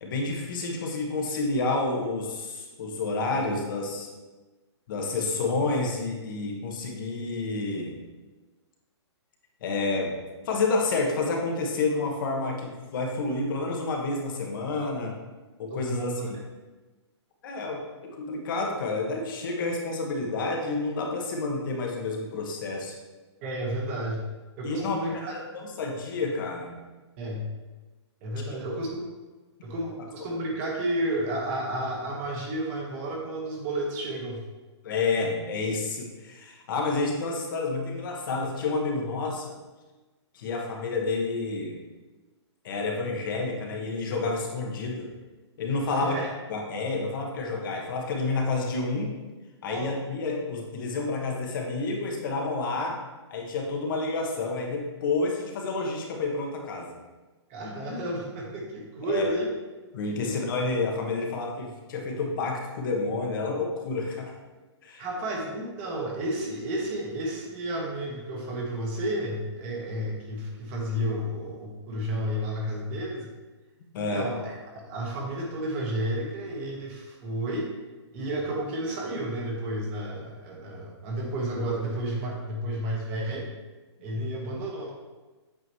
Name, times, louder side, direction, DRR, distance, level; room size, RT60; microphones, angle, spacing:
voice 1, 0.0-4.1 4.9-8.0 9.6-10.2 10.4-15.1 15.6-16.3 17.4-22.9 24.6-26.8 29.6-29.7 34.8-39.5 40.3-41.8 42.6-45.1 45.6-46.1 46.5-49.1 49.6-53.0 53.3-57.0 59.1-59.3 59.9-64.3 64.8-65.1 73.9-74.2, left 3 dB, 45° left, 0 dB, 1.2 m, -29 dB
voice 2, 15.7-16.3 23.4-24.3 24.6-25.3 27.2-27.5 28.2-29.1 29.6-34.4 45.9-46.3 49.7-49.9 57.5-59.5 60.0-60.1 65.0-73.3 73.9-77.7 78.1-83.5 84.0-84.9, right 1 dB, 30° right, -1 dB, 1.3 m, -31 dB
7.9 x 4.7 x 3.1 m, 1.2 s
hypercardioid pair, 155°, 15 cm